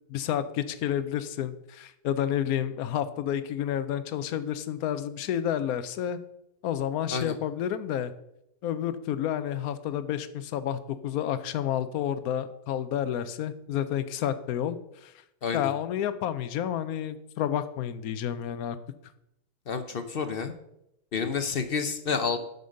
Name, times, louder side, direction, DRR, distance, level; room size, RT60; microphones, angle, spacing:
voice 1, 0.1-6.2 6.6-8.1 8.6-14.8 15.0-15.1 15.5-18.8, left 10 dB, 75° left, 13 dB, 1.1 m, -30 dB
voice 2, 15.4-15.7 19.7-20.5 21.1-22.4, left 5 dB, 50° left, 8 dB, 0.7 m, -29 dB
7.9 x 5.4 x 6.4 m, 0.81 s
omnidirectional pair, 1.6 m